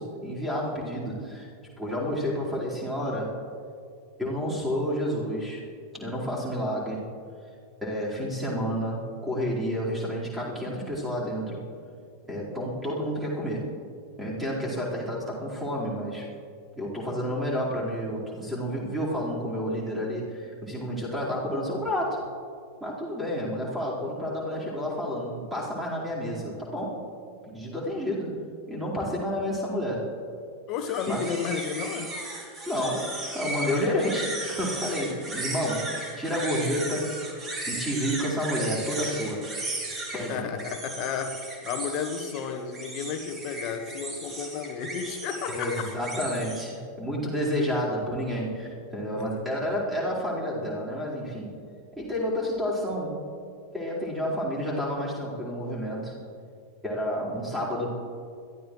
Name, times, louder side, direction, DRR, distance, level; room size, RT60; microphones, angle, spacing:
voice 1, 0.0-1.5 1.8-3.4 4.2-5.6 5.9-7.1 7.8-11.6 12.3-13.7 14.2-16.3 16.8-22.3 22.8-27.0 27.4-28.4 28.7-30.1 31.1-31.2 32.7-35.9 36.1-37.1 37.7-39.5 40.1-40.4 45.5-51.6 52.0-53.2 53.7-56.1 56.8-58.0, equal, 5° right, -6 dB, 4.5 m, -30 dB
voice 2, 30.7-32.2 40.3-45.9 49.1-49.3, left 6 dB, 40° left, 6 dB, 1.4 m, -32 dB
sound 1, 30.8-46.6, right 2 dB, 20° right, 2.9 m, -36 dB
22.0 x 14.5 x 3.2 m, 2.3 s
figure-of-eight pair, 90°, 0 cm